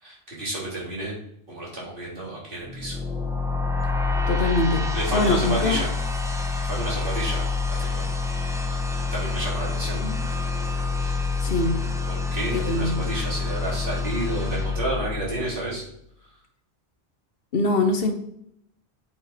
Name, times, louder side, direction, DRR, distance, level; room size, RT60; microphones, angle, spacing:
voice 1, 0.0-1.1 1.5-3.0 4.3-4.6 4.9-5.9 6.6-8.2 8.6-8.8 9.1-10.0 11.0-11.2 12.1-15.8, right 1 dB, 55° right, -6 dB, 3.5 m, -31 dB
sound 1, 2.7-15.7, left 4 dB, 5° right, 0.8 m, -27 dB
voice 2, 4.3-5.8 10.0-10.2 11.4-11.8 12.7-13.0 17.5-18.1, left 2 dB, 60° left, 5 dB, 1.3 m, -23 dB
8.2 x 5.2 x 5.1 m, 0.74 s
omnidirectional pair, 1.1 m